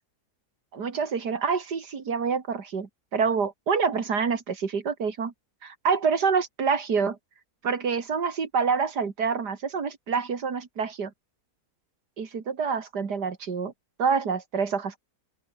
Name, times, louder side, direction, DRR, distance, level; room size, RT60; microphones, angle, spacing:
voice 1, 0.7-5.3 5.6-7.2 7.6-11.1 12.2-13.7 14.0-15.0, right 5 dB, 90° right, 2.8 m, -27 dB
open air
omnidirectional pair, 1.7 m